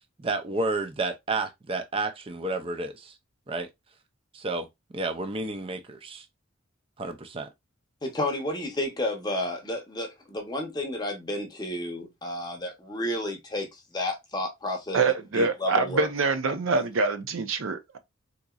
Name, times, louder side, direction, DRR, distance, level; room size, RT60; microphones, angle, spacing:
voice 1, 0.2-3.2 3.5-3.7 4.3-4.7 4.9-6.2 7.0-7.5, right 3 dB, 25° right, 0.5 m, -31 dB
voice 2, 8.0-15.0 15.3-16.1, left 1 dB, 20° left, 0.7 m, -31 dB
voice 3, 14.9-18.0, right 4 dB, 75° right, 0.6 m, -25 dB
3.9 x 2.9 x 2.3 m
head